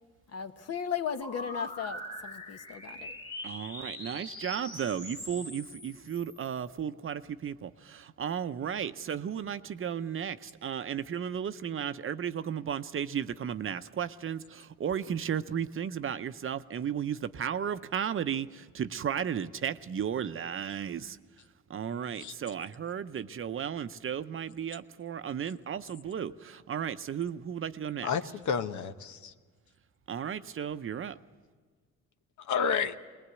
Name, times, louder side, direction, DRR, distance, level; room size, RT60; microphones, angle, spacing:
voice 1, 0.3-3.1, left 7 dB, 55° left, 8 dB, 1.2 m, -36 dB
sound 1, 1.2-6.7, left 1 dB, 15° left, 1.9 m, -43 dB
voice 2, 3.4-21.2 21.7-28.1 30.1-31.2, right 8 dB, 45° right, 12 dB, 0.7 m, -34 dB
voice 3, 28.0-29.3 32.4-33.0, left 6 dB, 75° left, 9 dB, 1.0 m, -30 dB
20.5 x 19.5 x 8.3 m, 1.5 s
cardioid pair, 90°, 30 cm